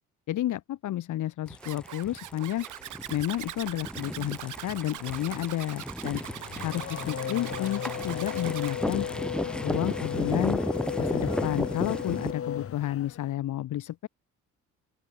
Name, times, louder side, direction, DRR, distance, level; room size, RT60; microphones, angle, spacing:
voice 1, 0.3-2.7 3.1-6.2 6.6-9.1 9.6-10.6 11.0-14.1, left 13 dB, 80° left, 4.2 m, -31 dB
sound 1, 1.5-12.3, equal, 5° left, 3.8 m, -34 dB
Zipper (clothing), 1.6-8.8, right 14 dB, 80° right, 3.5 m, -41 dB
Race car auto racing / Accelerating revving vroom, 6.1-13.3, left 8 dB, 50° left, 1.5 m, -35 dB
open air
cardioid pair, 90°, 30 cm